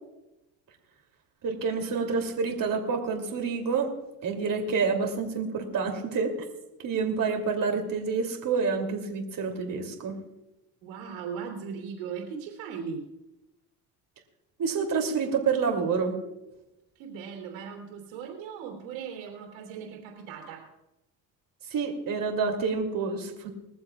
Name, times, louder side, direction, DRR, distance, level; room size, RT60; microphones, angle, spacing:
voice 1, 1.4-3.9 4.2-6.3 6.8-10.2 14.6-16.2 21.7-23.5, right 5 dB, 50° right, 2 dB, 2.9 m, -28 dB
voice 2, 10.8-13.1 16.9-20.7, right 6 dB, 90° right, 3 dB, 3.2 m, -38 dB
21.0 x 14.5 x 2.4 m, 0.94 s
supercardioid pair, 80°, 42 cm